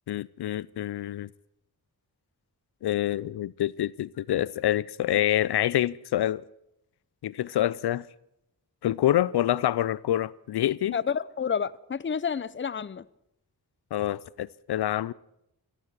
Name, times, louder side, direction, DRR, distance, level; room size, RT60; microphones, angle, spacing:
voice 1, 0.1-1.3 2.8-6.4 7.2-8.0 8.8-11.0 13.9-15.1, left 12 dB, 85° left, 0.5 m, -26 dB
voice 2, 10.9-13.0, left 7 dB, 30° left, 0.6 m, -29 dB
14.5 x 12.5 x 7.5 m
cardioid pair, 65°, 39 cm